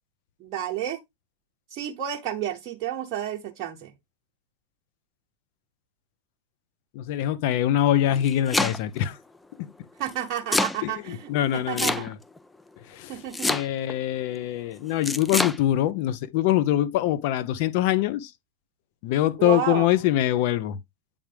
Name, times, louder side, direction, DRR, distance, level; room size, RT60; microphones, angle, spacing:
voice 1, 0.4-1.0 1.7-3.9 10.0-12.1 13.1-13.6 19.4-19.9, right 11 dB, 40° right, 0.8 m, -31 dB
voice 2, 6.9-9.2 10.8-12.1 12.9-13.1 13.5-18.3 19.0-20.8, left 12 dB, 55° left, 0.7 m, -24 dB
Domestic sounds home sounds, 8.0-9.0 10.1-10.8 11.8-12.4 13.3-14.0 15.0-15.6, left 2 dB, 10° left, 0.4 m, -26 dB
8.5 x 3.5 x 3.3 m
hypercardioid pair, 105°, 0 cm